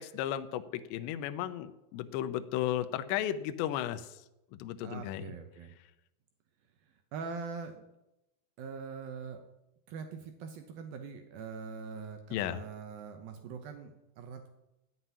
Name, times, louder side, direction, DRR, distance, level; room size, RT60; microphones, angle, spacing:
voice 1, 0.0-4.2 4.5-5.3 12.3-12.6, left 12 dB, 80° left, 10 dB, 2.7 m, -34 dB
voice 2, 4.8-5.7 7.1-7.8 8.6-9.4 9.9-14.5, right 5 dB, 80° right, 5 dB, 2.1 m, -43 dB
13.5 x 5.9 x 9.7 m, 0.91 s
omnidirectional pair, 5.6 m